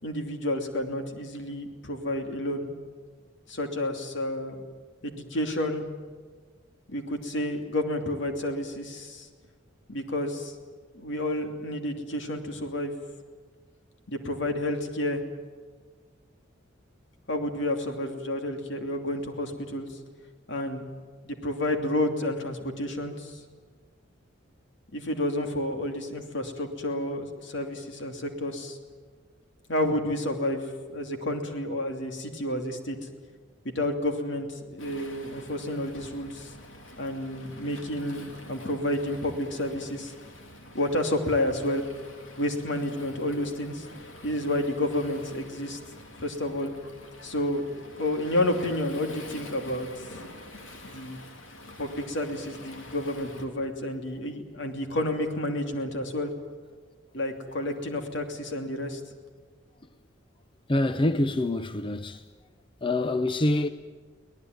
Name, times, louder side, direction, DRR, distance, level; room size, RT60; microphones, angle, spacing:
voice 1, 0.0-2.7 3.5-4.5 5.0-5.8 6.9-9.3 9.9-10.5 10.9-12.9 14.1-15.2 17.3-19.9 20.5-20.8 21.2-23.4 24.9-28.8 29.7-30.6 30.9-33.0 33.6-36.5 37.0-40.1 40.7-41.9 42.4-43.9 44.2-45.8 46.2-46.7 47.2-47.6 48.0-49.9 50.8-51.2 51.8-56.3 57.1-59.0, left 1 dB, 65° left, 2.8 m, -30 dB
Waves surf, 34.8-53.5, left 1 dB, 85° left, 3.2 m, -46 dB
voice 2, 60.7-62.3 62.8-63.7, left 1 dB, 25° left, 0.6 m, -26 dB
23.5 x 18.5 x 9.4 m
head